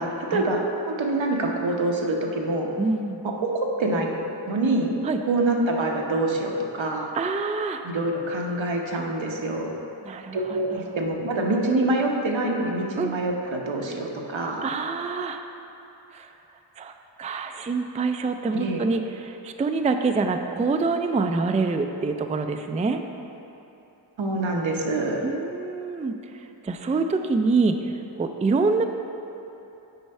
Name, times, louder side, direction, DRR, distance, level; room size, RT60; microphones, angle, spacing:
voice 1, 0.0-2.7 3.2-4.1 4.5-4.9 5.2-7.1 7.8-9.7 10.3-14.6 18.5-18.8 24.2-25.2, right 2 dB, 80° right, 0 dB, 1.0 m, -25 dB
voice 2, 2.8-3.2 5.0-5.2 7.1-7.8 10.0-10.8 13.0-13.1 14.6-15.4 16.1-16.3 16.8-16.9 17.2-23.0 25.2-26.1 26.6-27.9 28.2-28.9, right 4 dB, 15° right, 6 dB, 0.3 m, -25 dB
8.0 x 4.4 x 5.4 m, 2.9 s
wide cardioid pair, 60°, 45 cm